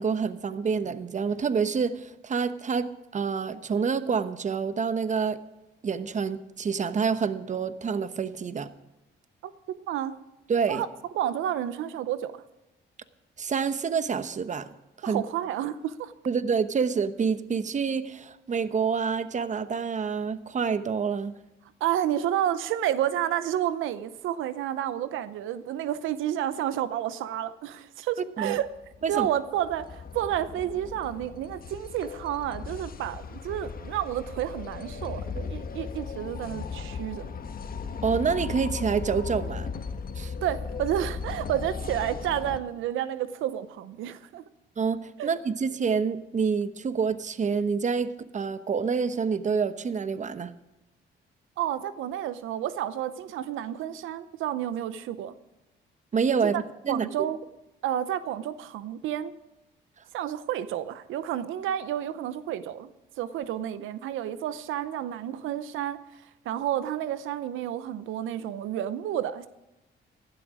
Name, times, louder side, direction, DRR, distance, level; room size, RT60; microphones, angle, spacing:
voice 1, 0.0-2.9 3.1-5.4 5.8-8.7 10.5-10.8 13.4-14.7 15.0-15.2 16.3-21.3 28.4-28.6 29.0-29.3 38.0-39.7 40.2-40.3 44.8-50.5 56.1-57.1, right 5 dB, 40° right, 13 dB, 1.0 m, -27 dB
voice 2, 9.4-10.1 10.7-10.9 11.1-12.3 15.0-16.1 21.8-28.7 29.1-37.3 40.2-44.4 45.2-45.3 51.6-55.3 56.5-56.6 56.9-57.4 57.8-59.3 60.1-62.9 63.2-66.0 66.4-69.5, right 11 dB, 85° right, 14 dB, 0.7 m, -30 dB
sound 1, 28.7-42.6, left 5 dB, 45° left, 1.4 m, -37 dB
15.5 x 12.0 x 4.9 m, 0.99 s
cardioid pair, 90°, 20 cm